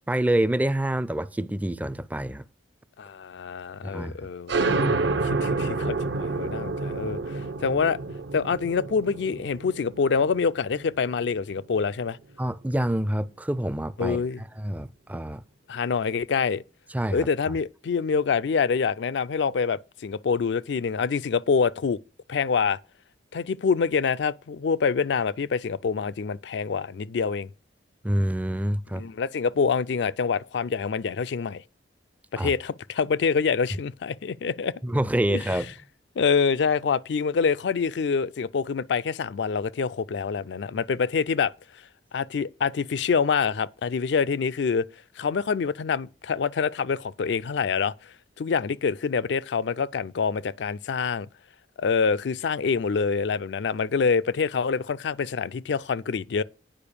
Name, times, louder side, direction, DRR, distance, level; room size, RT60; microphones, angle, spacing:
voice 1, 0.0-2.5 3.8-4.2 12.4-15.4 16.9-17.6 28.0-29.0 32.4-32.5 34.8-35.7, right 1 dB, 10° right, 0.4 m, -27 dB
voice 2, 3.0-8.0 8.3-12.2 14.0-14.4 15.7-16.6 17.1-22.0 22.3-22.8 23.3-27.5 29.0-31.6 32.3-34.7 35.3-35.4 36.2-41.5 42.1-44.8 45.2-47.9 48.4-51.3 51.8-56.4, left 5 dB, 70° left, 0.4 m, -26 dB
sound 1, 4.5-11.8, right 3 dB, 70° right, 0.7 m, -29 dB
8.9 x 5.1 x 6.7 m
head